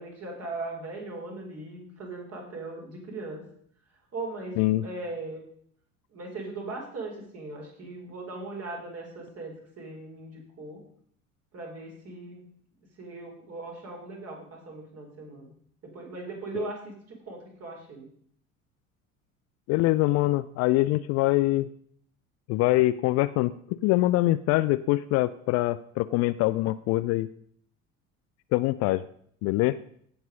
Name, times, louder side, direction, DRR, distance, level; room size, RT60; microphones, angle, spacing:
voice 1, 0.0-3.4 4.1-5.4 6.1-10.8 11.5-12.4 13.0-15.5 15.8-18.1, right 3 dB, 40° right, 0 dB, 4.4 m, -39 dB
voice 2, 4.6-4.9 16.5-16.7 19.7-21.7 22.5-23.5 23.8-27.3 28.5-29.0 29.4-29.8, left 18 dB, 40° left, 14 dB, 0.5 m, -24 dB
16.5 x 6.0 x 5.3 m, 0.62 s
figure-of-eight pair, 65°, 39 cm